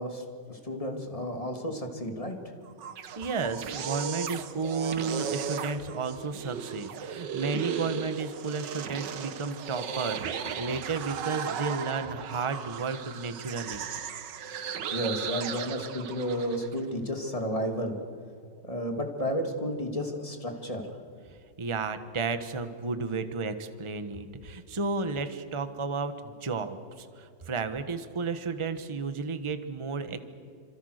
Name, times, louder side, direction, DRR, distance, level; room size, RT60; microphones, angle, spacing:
voice 1, 0.0-2.4 14.9-18.0 18.7-20.8, equal, 20° left, 3 dB, 2.7 m, -32 dB
sound 1, 2.7-16.8, right 7 dB, 75° right, 1.8 m, -36 dB
voice 2, 3.2-13.8 21.6-30.2, right 4 dB, 20° right, 10 dB, 1.1 m, -33 dB
28.5 x 26.5 x 6.6 m, 2.3 s
omnidirectional pair, 1.9 m